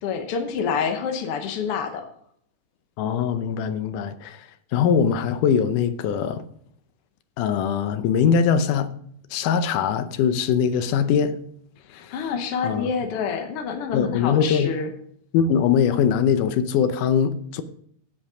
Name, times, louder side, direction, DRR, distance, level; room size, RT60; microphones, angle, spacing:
voice 1, 0.0-2.0 11.9-14.9, left 6 dB, 65° left, 1.5 m, -27 dB
voice 2, 3.0-4.5 4.7-6.4 7.4-8.9 9.3-11.4 11.9-12.2 12.6-12.9 13.9-14.7 15.3-17.6, left 7 dB, 80° left, 2.2 m, -22 dB
10.5 x 8.1 x 5.0 m
omnidirectional pair, 3.7 m